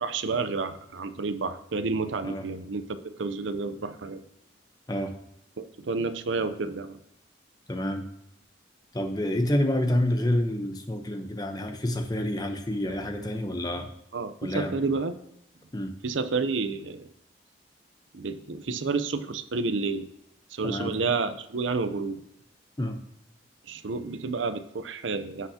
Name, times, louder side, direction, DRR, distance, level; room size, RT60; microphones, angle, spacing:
voice 1, 0.0-4.2 5.6-7.0 14.1-15.2 16.0-17.1 18.1-20.1 20.5-22.2 23.7-25.5, right 4 dB, 90° right, 11 dB, 0.6 m, -30 dB
voice 2, 7.7-8.0 8.9-13.9 14.4-14.7 15.7-15.9 20.6-20.9 22.8-23.0, left 1 dB, 20° left, 5 dB, 0.8 m, -28 dB
15.5 x 5.7 x 2.8 m, 0.78 s
head